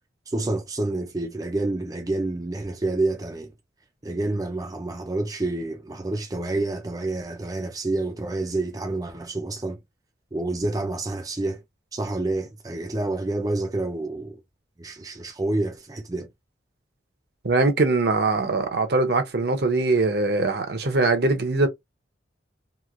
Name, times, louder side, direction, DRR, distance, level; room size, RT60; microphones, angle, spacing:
voice 1, 0.3-3.5 4.0-9.8 10.3-11.6 11.9-14.4 14.8-16.3, right 2 dB, 20° right, 0.4 m, -28 dB
voice 2, 17.4-21.7, right 3 dB, 55° right, 0.7 m, -22 dB
3.0 x 2.7 x 2.5 m
head